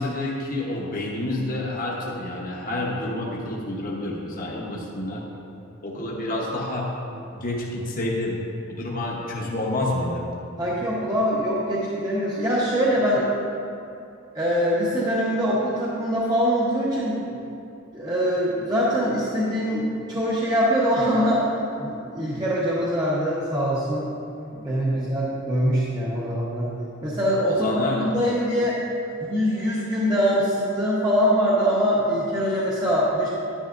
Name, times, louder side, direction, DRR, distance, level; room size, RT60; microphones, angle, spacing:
voice 1, 0.0-5.2 5.8-6.9 7.3-8.4 8.7-10.3 24.9-25.0 27.5-28.1, left 1 dB, 40° left, -3 dB, 1.1 m, -28 dB
voice 2, 10.6-13.3 14.3-17.2 17.9-21.4 21.8-24.1 24.5-27.7 27.9-28.8 29.3-33.3, equal, 20° right, -7 dB, 1.1 m, -23 dB
10.5 x 10.0 x 2.6 m, 2.6 s
head